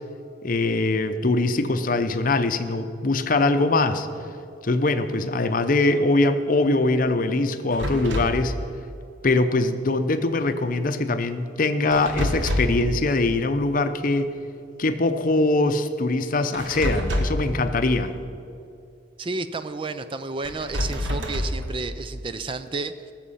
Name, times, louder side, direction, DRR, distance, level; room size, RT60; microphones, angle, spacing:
voice 1, 0.4-4.1 4.6-8.5 9.2-14.3 14.8-18.2, left 2 dB, 45° left, 9 dB, 0.7 m, -22 dB
sound 1, 7.7-8.4 11.9-12.9 16.5-17.5 20.4-21.7, equal, 85° right, 1.3 m, -27 dB
voice 2, 19.2-23.1, right 3 dB, 25° right, 11 dB, 0.4 m, -31 dB
19.0 x 7.3 x 5.7 m, 2.6 s
head